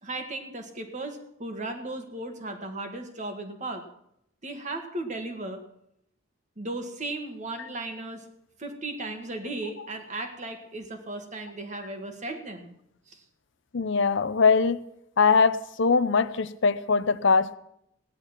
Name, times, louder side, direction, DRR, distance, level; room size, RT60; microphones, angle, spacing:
voice 1, 0.0-3.9 4.4-5.6 6.6-8.3 8.6-12.7 13.1-13.2, right 2 dB, 35° right, 1.9 m, -36 dB
voice 2, 13.7-14.8 15.2-17.5, left 5 dB, 65° left, 0.6 m, -22 dB
16.5 x 10.5 x 6.0 m
head